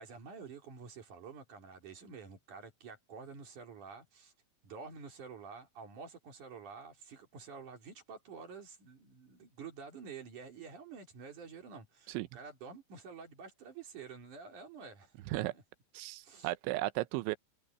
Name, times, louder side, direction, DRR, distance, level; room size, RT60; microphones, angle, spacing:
voice 1, 0.0-4.3 4.6-15.6 16.2-16.5, right 5 dB, 45° right, 4.5 m, -49 dB
voice 2, 15.9-17.4, right 18 dB, 85° right, 3.1 m, -35 dB
omnidirectional pair, 5.4 m